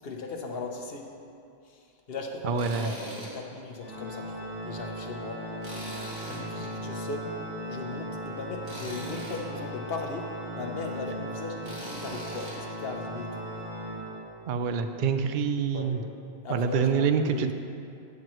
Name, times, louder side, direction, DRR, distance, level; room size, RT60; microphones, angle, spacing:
voice 1, 0.0-1.1 1.6-5.5 6.2-7.4 7.7-13.4 15.7-16.1 16.4-17.5, left 3 dB, 65° left, 2 dB, 1.1 m, -38 dB
voice 2, 2.5-2.9 14.5-16.0 16.5-17.5, right 6 dB, 60° right, 8 dB, 0.6 m, -26 dB
Tools, 2.6-3.3 3.7-3.8 5.6-6.7 8.6-9.4 11.6-12.5, right 1 dB, 35° right, 2.3 m, -41 dB
Organ, 3.8-14.6, equal, 10° right, 2.1 m, -38 dB
12.0 x 8.1 x 3.1 m, 2.5 s
omnidirectional pair, 1.1 m